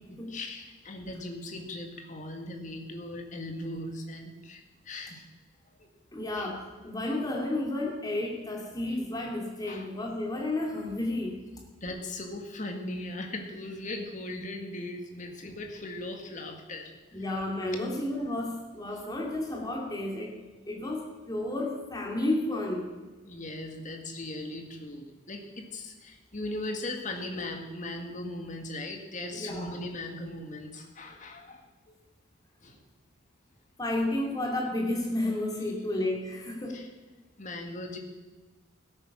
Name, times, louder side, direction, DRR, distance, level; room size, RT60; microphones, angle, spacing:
voice 1, 0.3-5.3 5.8-5.9 6.3-6.5 9.7-9.9 11.8-16.9 23.2-31.9 32.6-32.8 36.7-36.9 37.4-38.0, left 2 dB, 40° left, 3 dB, 1.9 m, -38 dB
voice 2, 6.1-11.4 17.1-20.4 20.7-22.9 29.3-29.8 33.8-36.8, left 1 dB, 20° left, -1 dB, 2.8 m, -32 dB
16.0 x 8.9 x 6.2 m, 1.2 s
head